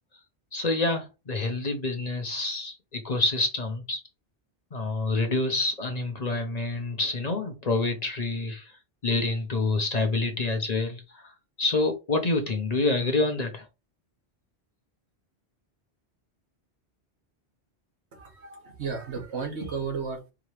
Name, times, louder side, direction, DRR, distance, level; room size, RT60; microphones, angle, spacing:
voice 1, 0.5-4.0 4.7-8.7 9.0-11.3 11.6-13.7, left 2 dB, 40° left, 0.9 m, -27 dB
voice 2, 18.1-20.3, right 5 dB, 85° right, 1.7 m, -34 dB
4.8 x 2.8 x 3.2 m
omnidirectional pair, 1.1 m